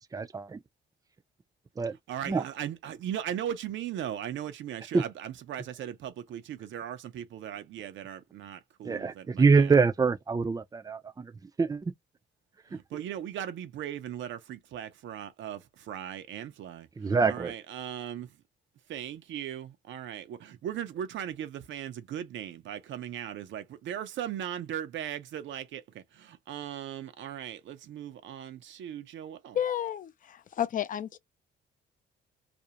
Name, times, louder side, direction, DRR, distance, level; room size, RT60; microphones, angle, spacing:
voice 1, 0.1-0.6 1.8-2.0 2.3-2.4 4.9-5.0 8.8-11.3 11.6-11.9 17.0-17.5, right 4 dB, 20° right, 0.4 m, -25 dB
voice 2, 2.1-9.7 12.7-18.4 18.9-29.6, right 10 dB, 70° right, 0.6 m, -38 dB
voice 3, 29.5-31.2, left 10 dB, 45° left, 0.5 m, -31 dB
2.5 x 2.0 x 2.8 m
cardioid pair, 90°, 20 cm